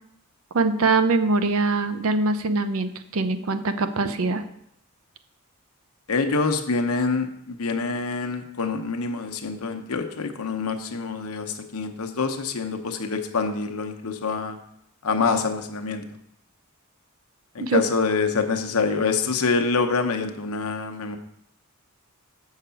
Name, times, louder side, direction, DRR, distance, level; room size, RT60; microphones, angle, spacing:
voice 1, 0.5-4.4 17.6-17.8, right 3 dB, 70° right, 10 dB, 0.6 m, -23 dB
voice 2, 6.1-14.6 15.0-16.0 17.5-21.2, left 4 dB, 80° left, 6 dB, 0.9 m, -26 dB
6.5 x 4.8 x 6.9 m, 0.74 s
head